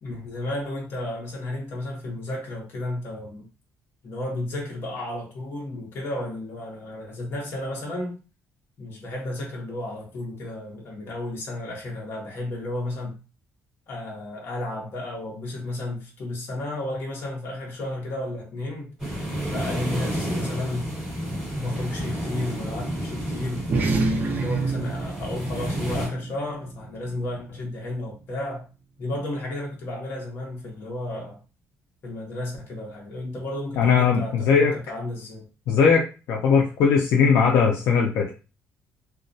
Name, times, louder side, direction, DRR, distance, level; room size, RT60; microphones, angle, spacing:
voice 1, 0.0-3.4 4.0-8.2 8.8-13.1 13.9-18.9 19.5-20.9 21.5-23.6 24.3-28.7 29.0-31.4 32.0-35.5, left 1 dB, 40° left, 0.8 m, -32 dB
sound 1, 19.0-26.1, equal, 10° right, 1.4 m, -31 dB
sound 2, 23.6-28.4, right 3 dB, 30° right, 0.4 m, -29 dB
voice 2, 33.8-34.7 35.7-36.0 36.3-38.3, left 6 dB, 70° left, 0.4 m, -19 dB
2.2 x 2.2 x 2.6 m
cardioid pair, 180°, 6 cm